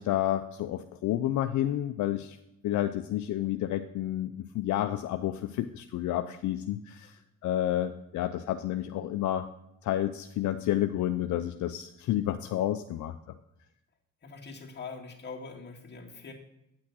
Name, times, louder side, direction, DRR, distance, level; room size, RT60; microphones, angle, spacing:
voice 1, 0.0-2.4 2.6-7.2 7.4-9.5 9.8-13.1, left 12 dB, 75° left, 8 dB, 0.5 m, -30 dB
voice 2, 14.2-16.3, left 4 dB, 35° left, -1 dB, 2.2 m, -43 dB
9.5 x 6.2 x 6.1 m, 0.84 s
cardioid pair, 90°, 30 cm